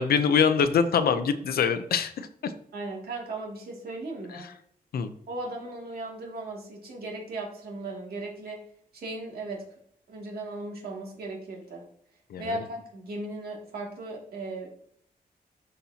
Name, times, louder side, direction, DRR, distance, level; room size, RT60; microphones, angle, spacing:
voice 1, 0.0-2.5 4.3-4.5 4.9-5.1 12.3-12.6, left 6 dB, 90° left, 9 dB, 0.6 m, -24 dB
voice 2, 2.7-4.5 5.3-8.6 8.9-9.6 10.1-11.8 12.4-14.7, right 2 dB, 85° right, -2 dB, 2.5 m, -37 dB
12.5 x 4.3 x 2.8 m, 0.66 s
wide cardioid pair, 115°, 15 cm